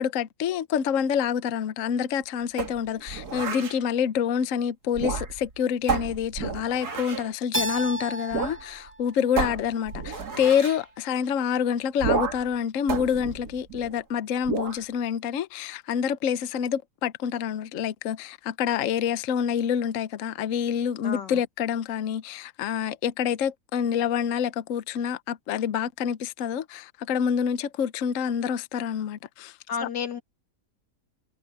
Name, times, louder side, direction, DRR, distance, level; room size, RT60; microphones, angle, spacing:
voice 1, 0.0-29.6 29.8-29.9, left 8 dB, 55° left, 1.0 m, -27 dB
sound 1, 2.6-3.8 4.9-5.5 5.9-7.3 8.3-8.6 8.9-9.0 9.4-10.8 12.0-12.5 12.9-14.0 14.4-14.8, right 5 dB, 65° right, 2.4 m, -31 dB
Keyboard (musical), 7.5-10.3, right 1 dB, 15° right, 0.4 m, -34 dB
voice 2, 21.0-21.3 29.7-30.2, left 7 dB, 90° left, 2.2 m, -31 dB
omnidirectional pair, 1.8 m